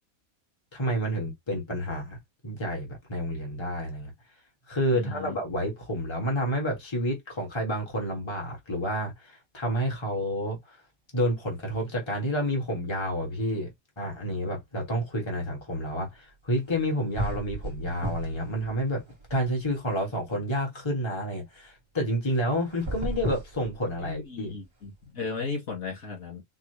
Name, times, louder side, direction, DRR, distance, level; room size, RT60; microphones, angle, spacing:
voice 1, 0.7-2.2 2.4-4.1 4.7-10.8 11.1-19.0 19.3-24.6, equal, 20° left, 1.4 m, -29 dB
voice 2, 4.9-5.3 23.8-26.4, left 4 dB, 80° left, 2.6 m, -36 dB
sound 1, 16.7-16.9 17.2-18.5 18.8-19.9 22.7-24.2, right 1 dB, 20° right, 1.0 m, -34 dB
4.6 x 2.4 x 3.2 m
omnidirectional pair, 1.4 m